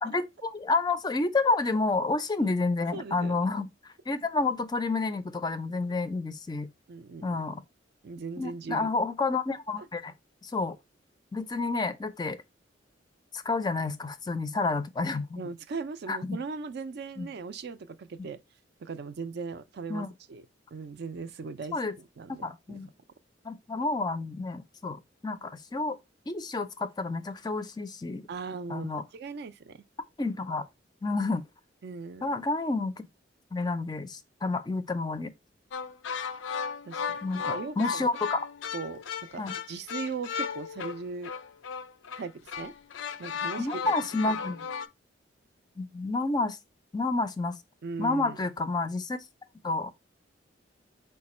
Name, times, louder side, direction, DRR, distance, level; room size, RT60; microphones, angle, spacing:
voice 1, 0.0-6.7 7.2-7.6 8.4-10.1 10.4-10.8 11.3-12.4 13.3-15.4 16.1-16.4 17.2-17.3 19.9-20.1 21.7-22.0 22.3-22.9 23.4-26.0 26.3-28.2 28.7-29.0 30.2-30.7 31.0-31.5 32.2-32.9 33.5-35.3 37.2-38.5 39.4-39.6 43.6-44.6 45.8-46.6 46.9-47.6 48.0-49.2 49.6-49.9, left 3 dB, 20° left, 0.4 m, -30 dB
voice 2, 2.9-3.5 6.9-7.4 8.0-8.9 9.8-9.9 15.4-18.4 18.8-20.4 20.7-22.8 28.3-29.8 31.8-32.3 36.8-38.1 38.7-39.0 39.3-41.3 42.2-42.7 43.2-43.9 44.2-44.3 47.8-48.4, right 4 dB, 60° right, 0.4 m, -39 dB
sound 1, 35.7-44.9, left 6 dB, 85° left, 0.4 m, -35 dB
4.9 x 2.2 x 4.2 m
head